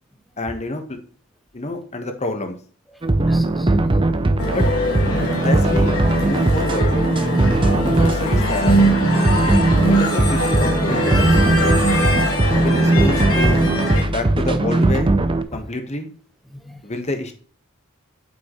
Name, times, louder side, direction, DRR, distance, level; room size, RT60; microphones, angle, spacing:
voice 1, 0.4-1.0 1.5-2.6 4.5-4.7 5.4-5.9 6.2-7.0 7.8-8.8 9.8-11.5 12.6-13.6 14.0-15.1 15.5-16.1 16.8-17.4, left 2 dB, 30° left, 7 dB, 1.2 m, -27 dB
sound 1, 3.0-15.4, right 2 dB, 25° right, 0.5 m, -19 dB
voice 2, 3.2-3.7 5.1-5.7 7.4-7.5 7.7-7.8 9.1-9.3 9.6-9.9 15.5-15.6 16.5-16.8, equal, ahead, 5 dB, 0.9 m, -37 dB
sound 2, 4.4-14.0, equal, 70° left, 2.4 m, -22 dB
8.0 x 5.8 x 3.0 m, 0.42 s
head